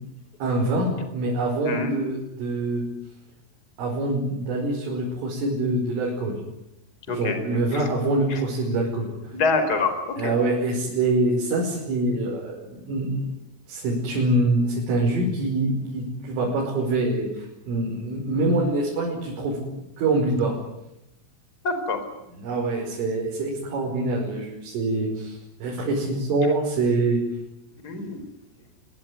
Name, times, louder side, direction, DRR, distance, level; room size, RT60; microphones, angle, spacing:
voice 1, 0.4-2.8 3.8-6.4 7.1-9.1 10.2-13.2 13.7-19.6 20.0-20.5 22.4-27.2, right 2 dB, 70° right, -2 dB, 7.9 m, -25 dB
voice 2, 9.3-10.3 21.6-22.0 27.8-28.2, left 3 dB, 20° left, 9 dB, 4.4 m, -25 dB
26.0 x 23.0 x 9.7 m, 0.87 s
omnidirectional pair, 5.8 m